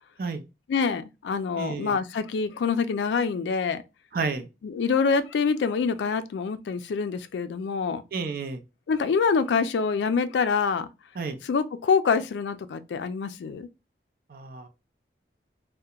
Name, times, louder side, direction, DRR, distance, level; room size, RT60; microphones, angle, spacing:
voice 1, 0.7-3.8 4.6-8.0 8.9-10.9 11.4-13.7, left 5 dB, 80° left, 0.3 m, -26 dB
voice 2, 1.6-2.0 4.1-4.5 8.1-8.6 11.2-11.4 14.3-14.7, right 4 dB, 55° right, 0.4 m, -31 dB
2.8 x 2.1 x 2.3 m
head